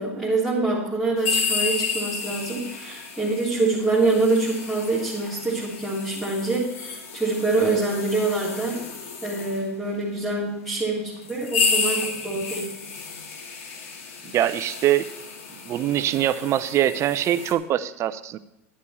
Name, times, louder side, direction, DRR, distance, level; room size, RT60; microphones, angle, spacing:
voice 1, 0.0-8.8 9.2-12.7, right 3 dB, ahead, -7 dB, 3.4 m, -25 dB
sound 1, 1.2-9.6 10.4-10.5 11.2-17.5, left 4 dB, 80° left, 2.1 m, -31 dB
voice 2, 14.3-15.1 15.7-18.4, right 12 dB, 40° right, 14 dB, 0.7 m, -23 dB
11.5 x 9.6 x 4.4 m, 0.91 s
hypercardioid pair, 110°, 7 cm